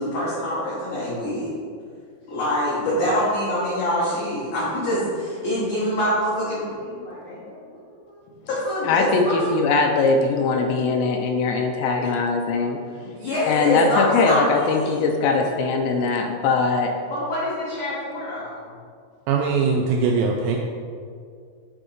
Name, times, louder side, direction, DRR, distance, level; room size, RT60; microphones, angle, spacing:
voice 1, 0.0-1.5 2.3-7.8 8.1-9.5 13.0-15.0 17.1-18.7, equal, 65° left, -9 dB, 1.9 m, -25 dB
voice 2, 8.8-12.8 13.5-16.9, left 4 dB, 85° left, 3 dB, 2.5 m, -21 dB
voice 3, 19.3-20.6, right 5 dB, 90° right, 0 dB, 2.4 m, -21 dB
9.2 x 3.7 x 5.0 m, 2.2 s
omnidirectional pair, 5.5 m